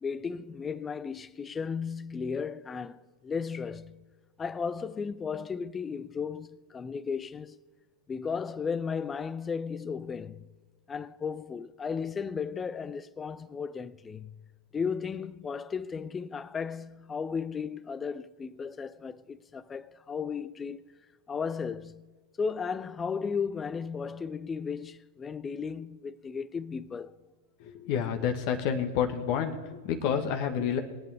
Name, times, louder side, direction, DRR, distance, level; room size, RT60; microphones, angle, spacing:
voice 1, 0.0-4.1 4.4-7.6 8.1-10.5 10.9-14.4 14.7-20.9 21.3-22.1 22.4-27.2, left 6 dB, 20° left, 0.6 m, -35 dB
voice 2, 27.6-30.8, left 8 dB, 50° left, 1.5 m, -29 dB
23.0 x 8.8 x 3.6 m
figure-of-eight pair, 95°, 0 cm